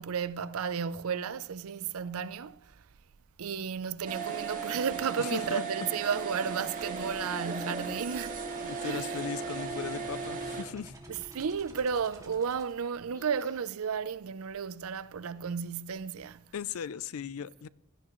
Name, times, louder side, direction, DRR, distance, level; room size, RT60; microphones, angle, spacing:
voice 1, 0.0-2.7 3.4-8.4 8.8-9.2 11.1-16.5, right 6 dB, 70° right, 0.5 m, -33 dB
sound 1, 4.1-10.6, right 5 dB, 35° right, 1.8 m, -36 dB
sound 2, 4.2-13.6, right 1 dB, 15° right, 2.1 m, -49 dB
voice 2, 5.2-5.6 8.6-10.9 16.5-17.7, left 7 dB, 75° left, 0.4 m, -37 dB
17.0 x 12.5 x 3.0 m
head